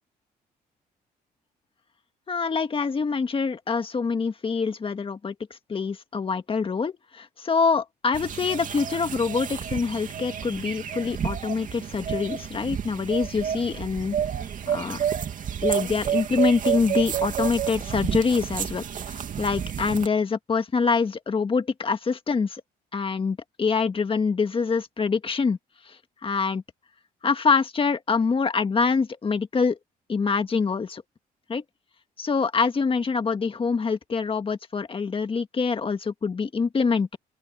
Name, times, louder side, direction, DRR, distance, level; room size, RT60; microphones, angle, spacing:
voice 1, 2.3-14.2 14.7-15.0 15.6-22.6 22.9-25.6 25.9-26.6 27.2-29.8 30.1-31.0 31.5-31.6 32.2-37.2, left 5 dB, 35° left, 1.8 m, -25 dB
Farm Ambiance, 8.1-20.1, right 9 dB, 55° right, 2.6 m, -30 dB
open air
cardioid pair, 100°, 16 cm